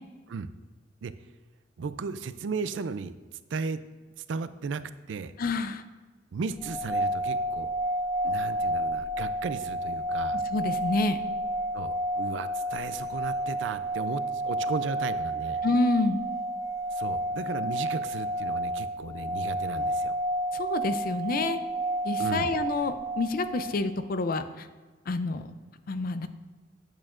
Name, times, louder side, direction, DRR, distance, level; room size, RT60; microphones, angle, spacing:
voice 1, 1.8-3.1 3.5-3.8 4.3-4.8 5.1-5.3 6.3-7.7 8.2-10.4 11.7-15.6 16.9-20.2 22.2-22.5, right 4 dB, 80° right, 13 dB, 0.4 m, -35 dB
voice 2, 5.4-5.8 10.5-11.2 15.6-16.2 20.5-21.6 22.0-24.7 25.1-25.5 25.9-26.3, left 3 dB, 50° left, 11 dB, 0.4 m, -28 dB
sound 1, 6.6-23.8, right 1 dB, 15° right, 0.7 m, -30 dB
8.7 x 8.5 x 2.5 m, 1.3 s
head